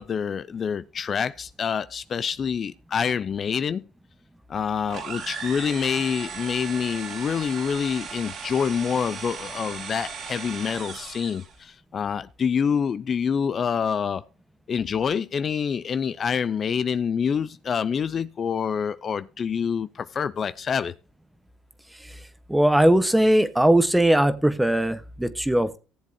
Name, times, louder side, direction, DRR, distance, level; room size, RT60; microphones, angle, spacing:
voice 1, 0.0-3.9 4.5-14.2 14.7-20.9, left 7 dB, 45° left, 0.5 m, -26 dB
sound 1, 4.9-11.6, right 6 dB, 55° right, 2.8 m, -37 dB
voice 2, 22.5-25.8, right 1 dB, 5° right, 1.2 m, -19 dB
18.0 x 7.5 x 2.8 m
supercardioid pair, 85°, 0 cm